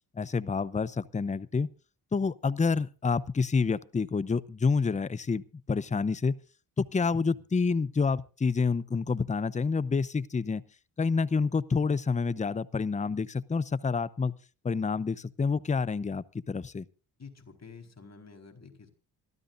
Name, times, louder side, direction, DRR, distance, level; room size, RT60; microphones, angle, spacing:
voice 1, 0.1-1.7 2.1-6.4 6.8-10.6 11.0-14.3 14.6-16.9, left 4 dB, 15° left, 21 dB, 0.6 m, -28 dB
voice 2, 17.2-18.9, left 5 dB, 35° left, 4 dB, 4.3 m, -49 dB
27.0 x 13.0 x 2.6 m, 0.33 s
supercardioid pair, 55°, 44 cm